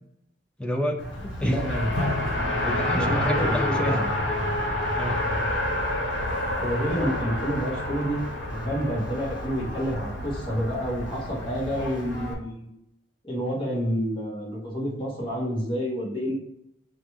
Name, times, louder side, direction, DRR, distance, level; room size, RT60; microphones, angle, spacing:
voice 1, 0.6-1.0 1.4-1.6 2.6-4.0 4.9-5.2 7.0-7.2, equal, 5° left, 2 dB, 0.4 m, -29 dB
Race car auto racing, 1.0-12.3, left 1 dB, 80° left, 1.0 m, -28 dB
voice 2, 1.4-1.9 2.9-4.1 6.6-8.2 8.6-12.7 13.2-16.4, equal, 25° left, -6 dB, 1.4 m, -29 dB
6.1 x 2.4 x 3.2 m, 0.78 s
head